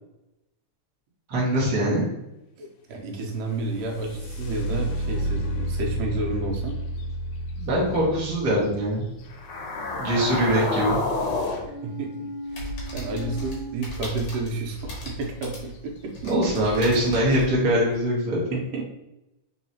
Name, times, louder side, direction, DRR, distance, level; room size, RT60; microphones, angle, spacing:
voice 1, 1.3-2.0 7.6-9.0 10.0-11.0 16.2-18.6, right 1 dB, 45° right, -5 dB, 1.3 m, -23 dB
voice 2, 2.6-6.8 11.8-16.3 18.5-18.9, right 3 dB, 85° right, 0 dB, 2.4 m, -31 dB
sound 1, 3.4-11.2 13.3-13.4 13.9-14.4 15.0-15.1 15.6-16.0, right 1 dB, 85° left, 2.2 m, -32 dB
sound 2, 9.3-13.7, left 3 dB, 70° left, 1.8 m, -30 dB
sound 3, 12.5-18.1, equal, 55° left, 1.4 m, -37 dB
4.6 x 3.8 x 2.8 m, 0.93 s
omnidirectional pair, 3.7 m